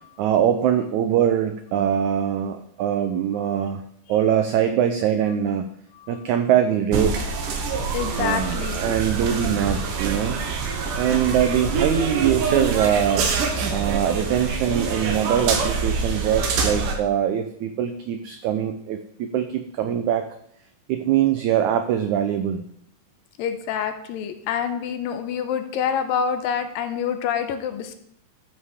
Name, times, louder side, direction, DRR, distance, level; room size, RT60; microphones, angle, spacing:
voice 1, 0.2-3.8 4.1-5.7 6.1-7.3 8.2-10.4 10.9-13.2 13.7-20.3 20.9-22.6, right 9 dB, 90° right, 8 dB, 1.7 m, -22 dB
sound 1, 6.9-16.9, right 4 dB, 70° right, 2.7 m, -25 dB
voice 2, 7.9-8.9 23.4-28.0, left 8 dB, 80° left, 8 dB, 2.5 m, -27 dB
13.0 x 5.5 x 4.9 m, 0.69 s
omnidirectional pair, 4.1 m